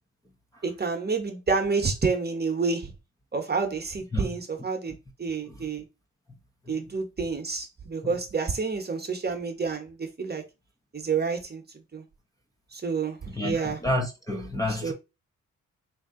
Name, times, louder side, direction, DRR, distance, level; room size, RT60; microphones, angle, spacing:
voice 1, 0.6-2.9 3.3-5.9 6.7-10.4 10.9-11.6 11.9-12.0 12.7-13.8 14.7-14.9, right 4 dB, 30° right, 1.2 m, -29 dB
voice 2, 13.4-14.9, left 1 dB, 10° left, 1.0 m, -29 dB
3.6 x 2.8 x 3.8 m
cardioid pair, 65°, 32 cm